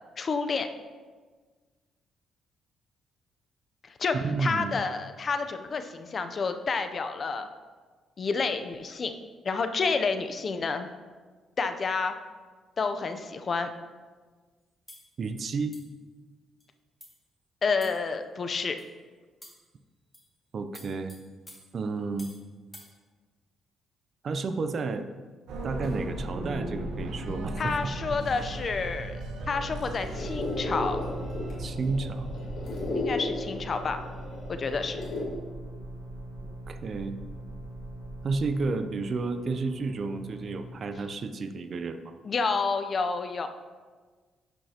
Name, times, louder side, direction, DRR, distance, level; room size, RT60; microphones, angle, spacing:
voice 1, 0.2-0.7 4.0-7.5 8.2-9.1 9.4-10.9 11.6-12.1 12.8-13.7 17.6-18.8 27.6-31.1 32.9-34.0 34.5-35.0 42.2-43.5, left 4 dB, 45° left, 8 dB, 0.6 m, -29 dB
voice 2, 4.1-4.8 15.2-15.8 20.5-21.2 21.7-22.3 24.2-25.1 25.6-27.9 31.6-32.3 36.4-37.2 38.2-42.2, right 4 dB, 50° right, 9 dB, 0.5 m, -31 dB
sound 1, 14.9-15.1 15.7-16.0 16.6-16.7 17.0-17.2 17.8-18.2 18.8-18.9 19.4-19.7 20.1-20.3 20.7-22.4 22.7-22.9, left 1 dB, 15° left, 2.1 m, -50 dB
sound 2, 25.5-40.7, right 1 dB, 80° right, 1.0 m, -38 dB
sound 3, 29.9-35.2, left 2 dB, 75° left, 2.0 m, -35 dB
10.5 x 5.4 x 2.9 m, 1.4 s
cardioid pair, 90°, 0 cm